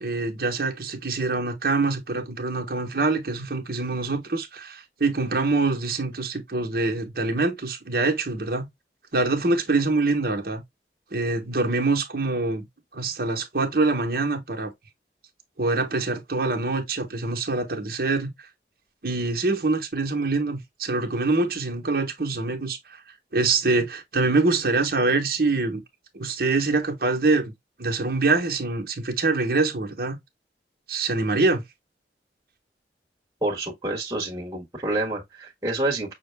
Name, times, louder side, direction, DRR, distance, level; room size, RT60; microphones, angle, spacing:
voice 1, 0.0-8.7 9.1-10.6 11.1-12.7 12.9-14.7 15.6-18.3 19.0-23.0 23.3-25.8 26.1-27.5 27.8-30.2 30.9-31.6, right 3 dB, 55° right, 1.1 m, -25 dB
voice 2, 33.4-36.1, right 2 dB, 20° right, 1.4 m, -28 dB
6.2 x 2.2 x 3.3 m
head